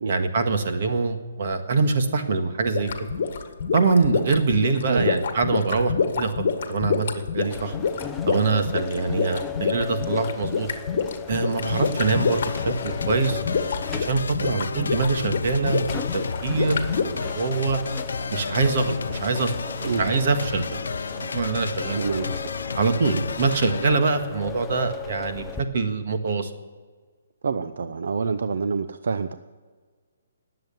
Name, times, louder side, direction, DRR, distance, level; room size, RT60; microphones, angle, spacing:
voice 1, 0.1-3.1 3.7-6.3 6.7-7.1 7.3-7.8 8.3-10.7 11.3-13.4 13.9-15.8 16.1-17.8 18.3-19.5 19.8-20.9 21.2-22.0 22.7-26.5, right 4 dB, 45° right, 5 dB, 1.8 m, -24 dB
sound 1, 2.7-17.0, left 5 dB, 40° left, 1.8 m, -27 dB
voice 2, 4.9-5.2 14.4-14.7 19.9-20.0 22.0-22.4 23.1-23.2 27.4-29.3, right 5 dB, 60° right, 10 dB, 0.7 m, -27 dB
sound 2, 7.5-25.6, left 8 dB, 5° left, 0.6 m, -37 dB
sound 3, 11.6-24.0, left 5 dB, 85° left, 0.5 m, -32 dB
19.5 x 7.8 x 9.1 m, 1.5 s
hypercardioid pair, 175°, 0 cm